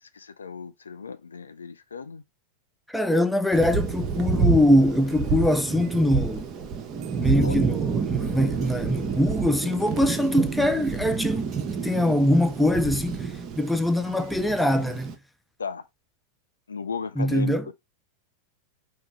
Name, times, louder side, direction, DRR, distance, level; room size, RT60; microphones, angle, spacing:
voice 1, 0.0-2.2 7.2-7.6 15.6-15.9 16.7-17.7, left 5 dB, 75° left, 0.4 m, -35 dB
voice 2, 2.9-6.5 7.2-11.5 11.8-13.3 13.6-15.1 17.2-17.6, left 1 dB, ahead, 0.5 m, -23 dB
Thunder, 3.5-15.2, right 5 dB, 30° right, 0.8 m, -29 dB
4.9 x 3.0 x 3.5 m
figure-of-eight pair, 90°, 0 cm